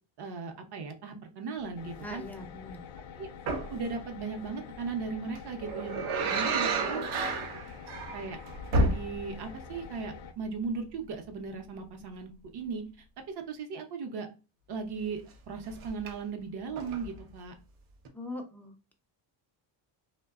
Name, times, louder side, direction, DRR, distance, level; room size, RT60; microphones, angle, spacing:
voice 1, 0.2-2.2 3.2-3.3 3.7-7.0 8.1-8.4 8.7-12.9 13.3-14.3 14.7-17.5, right 5 dB, 55° right, 5 dB, 0.8 m, -37 dB
sound 1, 1.8-10.3, left 7 dB, 70° left, 0.5 m, -47 dB
voice 2, 2.0-2.8 18.1-18.7, left 2 dB, 5° left, 3 dB, 0.3 m, -41 dB
sound 2, 3.5-3.8 5.4-9.5 9.8-9.9 15.7-16.1 16.8-17.2 18.0-18.1, right 2 dB, 90° right, 0.7 m, -31 dB
2.7 x 2.2 x 2.4 m, 0.32 s
cardioid pair, 105°, 48 cm